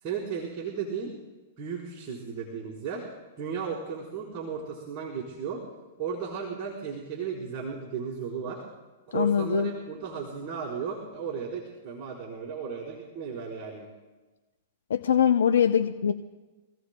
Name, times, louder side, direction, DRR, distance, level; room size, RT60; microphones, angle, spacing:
voice 1, 0.0-1.1 1.6-3.1 3.4-5.6 6.0-8.6 9.1-13.9, right 6 dB, 35° right, -5 dB, 4.1 m, -35 dB
voice 2, 9.1-9.7 14.9-16.1, left 8 dB, 80° left, 7 dB, 0.6 m, -22 dB
27.0 x 16.0 x 2.2 m, 1.2 s
hypercardioid pair, 125°, 0 cm